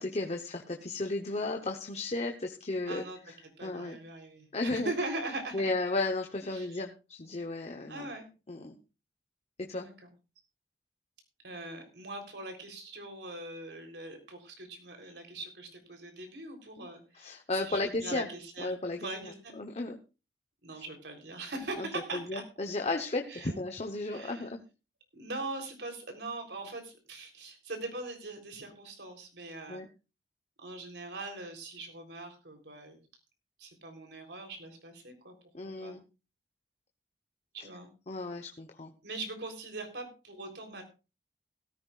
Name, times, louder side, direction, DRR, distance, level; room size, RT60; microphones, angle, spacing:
voice 1, 0.0-3.0 3.6-4.0 4.5-4.9 5.5-8.1 8.5-8.8 9.7-9.9 16.8-16.9 17.1-18.3 18.6-20.0 20.7-20.8 21.8-24.6 29.7-29.9 35.5-36.0 38.1-38.9, left 2 dB, 40° left, 4 dB, 1.0 m, -34 dB
voice 2, 2.9-3.2 3.6-5.7 6.5-6.8 7.9-8.3 9.8-10.1 11.4-18.7 19.0-19.5 20.6-22.4 23.3-23.6 24.1-24.5 25.1-29.8 30.6-33.0 33.6-35.3 35.8-36.0 37.5-37.9 39.0-40.8, right 2 dB, 80° right, 4 dB, 3.7 m, -41 dB
16.5 x 14.0 x 2.5 m, 0.31 s
head